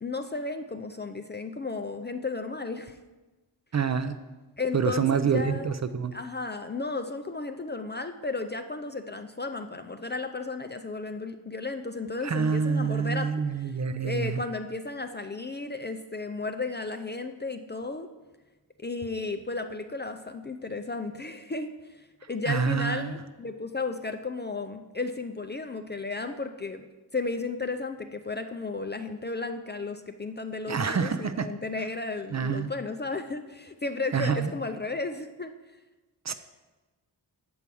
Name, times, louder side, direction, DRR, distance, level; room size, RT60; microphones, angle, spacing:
voice 1, 0.0-3.0 4.6-5.7 6.1-18.1 18.8-26.8 27.1-35.5, left 3 dB, 25° left, 7 dB, 0.4 m, -34 dB
voice 2, 3.7-4.2 4.7-6.1 12.2-14.4 22.5-23.2 30.7-31.5 32.3-32.7 34.1-34.5 36.3-36.4, right 6 dB, 40° right, 11 dB, 0.4 m, -27 dB
7.1 x 4.6 x 6.9 m, 1.2 s
wide cardioid pair, 100°, 43 cm